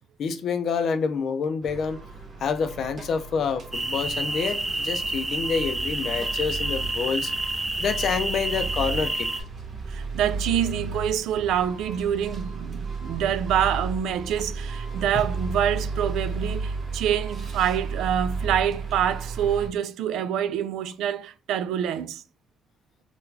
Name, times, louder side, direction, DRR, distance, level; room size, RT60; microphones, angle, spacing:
voice 1, 0.2-2.0 2.4-7.3 7.8-9.3, left 6 dB, 65° left, 0.5 m, -27 dB
sound 1, 1.6-19.7, right 4 dB, 45° right, 1.0 m, -34 dB
sound 2, 3.7-9.4, right 2 dB, 20° right, 0.5 m, -29 dB
voice 2, 9.9-22.2, right 9 dB, 85° right, 0.3 m, -26 dB
3.8 x 2.3 x 2.6 m
cardioid pair, 90°, 0 cm